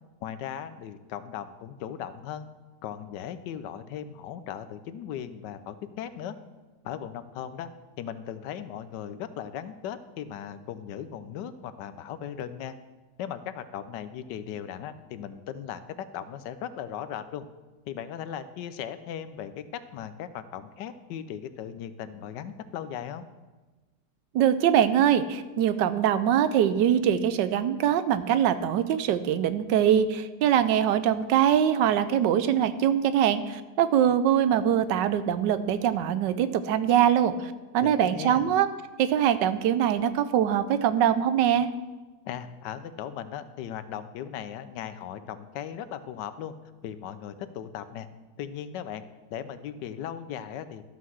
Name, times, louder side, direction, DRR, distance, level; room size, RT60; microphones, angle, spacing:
voice 1, 0.2-2.5 2.8-6.4 6.8-7.7 8.0-12.7 13.2-17.5 17.9-23.2 37.8-38.5 42.2-46.5 46.8-48.1 48.4-49.0 49.3-50.9, left 9 dB, 85° left, 12 dB, 1.3 m, -37 dB
voice 2, 24.3-38.7 39.0-41.7, right 9 dB, 85° right, 12 dB, 1.3 m, -23 dB
13.0 x 5.7 x 6.2 m, 1.2 s
omnidirectional pair, 1.9 m